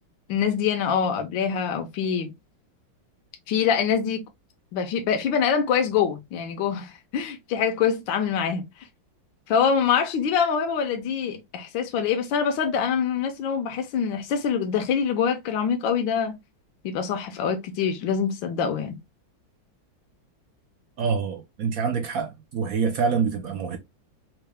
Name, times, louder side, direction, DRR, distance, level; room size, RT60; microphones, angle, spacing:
voice 1, 0.3-2.3 3.5-4.2 4.7-8.7 9.5-16.4 16.8-18.9, left 7 dB, 80° left, 1.4 m, -25 dB
voice 2, 21.0-23.8, right 5 dB, 75° right, 0.8 m, -26 dB
4.4 x 2.1 x 3.3 m
omnidirectional pair, 2.1 m